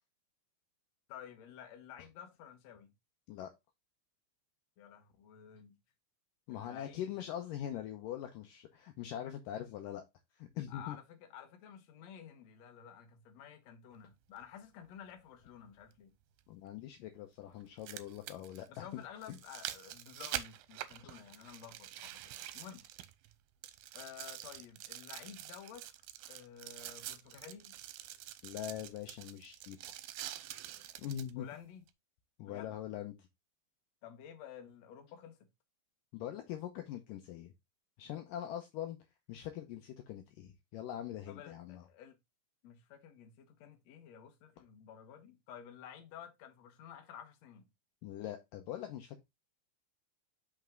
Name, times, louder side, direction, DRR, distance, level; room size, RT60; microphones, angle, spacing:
voice 1, 1.1-2.9 4.8-5.7 6.5-7.1 10.7-16.1 18.7-22.8 23.9-25.8 26.3-27.8 31.4-31.8 32.4-32.8 34.0-35.5 41.3-42.2 42.6-47.7, left 9 dB, 60° left, 2.0 m, -52 dB
voice 2, 6.5-10.0 10.4-11.0 16.5-18.9 28.4-30.0 31.0-31.5 32.4-33.2 36.1-37.5 38.0-39.0 39.3-41.9 48.0-49.2, left 11 dB, 75° left, 2.2 m, -42 dB
sound 1, 14.4-14.5 16.4-16.5 17.6-23.3 23.6-31.3 31.9-32.0, right 13 dB, 85° right, 2.4 m, -46 dB
5.8 x 5.2 x 3.7 m
omnidirectional pair, 4.4 m